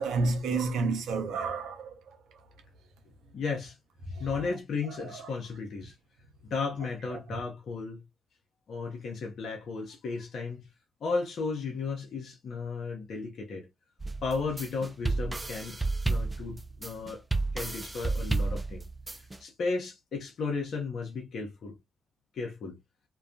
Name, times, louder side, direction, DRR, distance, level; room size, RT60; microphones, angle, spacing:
voice 1, 0.0-2.0 4.1-4.3 4.9-5.2 7.1-7.2, right 3 dB, 75° right, 0.6 m, -30 dB
voice 2, 3.3-3.8 4.2-5.9 6.4-8.0 8.7-10.7 11.0-13.7 14.2-15.8 16.0-17.2 17.5-18.8 19.4-21.7 22.3-22.8, left 4 dB, 65° left, 0.7 m, -34 dB
sound 1, 14.0-19.4, right 3 dB, 25° right, 0.5 m, -31 dB
2.2 x 2.2 x 2.6 m
hypercardioid pair, 40°, 0 cm